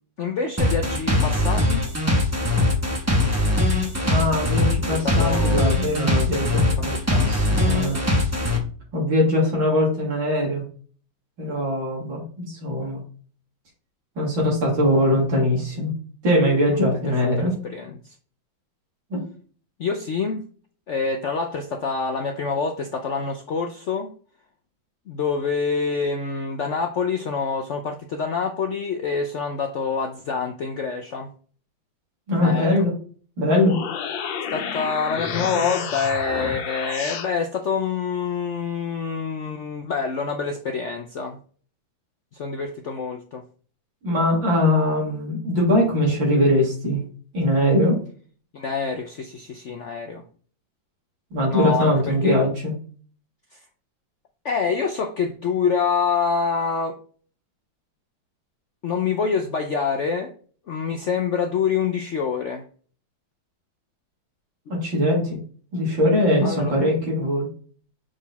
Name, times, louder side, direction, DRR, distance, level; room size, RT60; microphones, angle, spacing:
voice 1, 0.2-1.8 5.0-5.7 6.8-6.9 7.1-7.3 16.7-16.8 17.2-18.1 19.8-20.4 20.9-24.1 25.1-31.3 32.4-32.8 34.5-41.4 42.3-43.4 48.5-50.2 51.5-52.4 53.5-53.6 54.4-57.0 58.8-60.3 60.7-62.6 66.4-66.8, left 5 dB, 65° left, 4 dB, 0.7 m, -26 dB
sound 1, 0.6-8.6, left 1 dB, 10° right, 1.0 m, -21 dB
voice 2, 4.1-8.0 8.9-10.7 11.4-13.0 14.2-15.9 16.2-17.5 19.1-19.2 32.3-32.9 33.4-33.8 44.0-47.0 47.3-48.0 51.3-52.7 64.7-65.4 65.7-67.5, left 1 dB, 85° right, -4 dB, 3.6 m, -21 dB
sound 2, 33.5-37.3, left 7 dB, 90° left, 1.6 m, -30 dB
6.3 x 4.6 x 4.1 m, 0.43 s
omnidirectional pair, 2.0 m